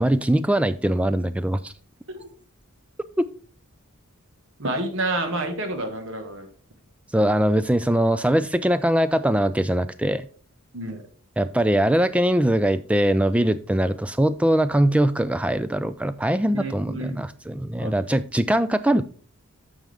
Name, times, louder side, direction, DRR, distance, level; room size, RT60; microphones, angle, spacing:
voice 1, 0.0-1.7 7.1-10.3 11.4-19.0, right 1 dB, 5° right, 13 dB, 0.3 m, -21 dB
voice 2, 4.6-6.5 10.7-11.1 16.5-17.3 17.8-18.0, right 2 dB, 60° right, 6 dB, 1.5 m, -29 dB
9.2 x 6.2 x 3.4 m, 0.43 s
head